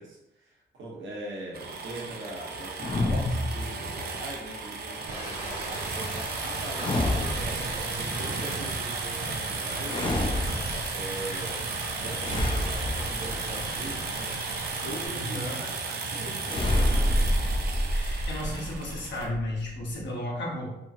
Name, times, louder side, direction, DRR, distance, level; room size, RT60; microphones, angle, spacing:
voice 1, 0.0-14.4 14.8-17.1, right 1 dB, 85° right, -3 dB, 0.9 m, -41 dB
sound 1, 1.5-19.3, right 4 dB, 55° right, 0.5 m, -34 dB
sound 2, 2.8-4.3 6.7-7.8 9.8-11.0 12.2-14.0 16.4-20.0, left 1 dB, 30° left, 0.4 m, -28 dB
sound 3, 5.1-15.1, right 1 dB, 30° right, 1.0 m, -40 dB
voice 2, 15.1-15.6 17.9-20.8, left 1 dB, 75° left, -3 dB, 0.9 m, -34 dB
2.8 x 2.6 x 2.4 m, 0.89 s
wide cardioid pair, 140°, 19 cm